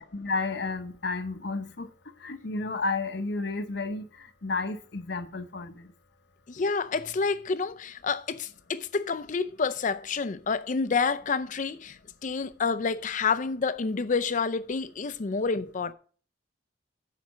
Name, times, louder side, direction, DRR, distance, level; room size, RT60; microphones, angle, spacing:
voice 1, 0.0-1.9 2.2-5.9, left 3 dB, 60° left, 0.9 m, -32 dB
voice 2, 6.5-15.9, left 4 dB, 40° left, 0.5 m, -29 dB
7.3 x 5.0 x 7.3 m
head